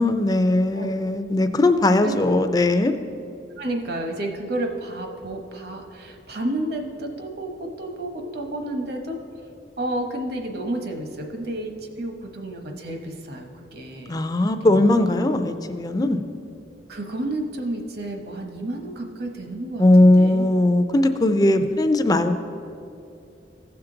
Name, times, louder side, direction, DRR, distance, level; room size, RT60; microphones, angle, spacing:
voice 1, 0.0-2.9 14.1-16.2 19.8-22.4, left 1 dB, 20° left, 8 dB, 0.4 m, -19 dB
voice 2, 3.6-9.2 9.8-14.2 14.6-14.8 16.9-20.5, right 1 dB, 60° right, 3 dB, 1.0 m, -31 dB
15.0 x 5.8 x 3.9 m, 2.6 s
head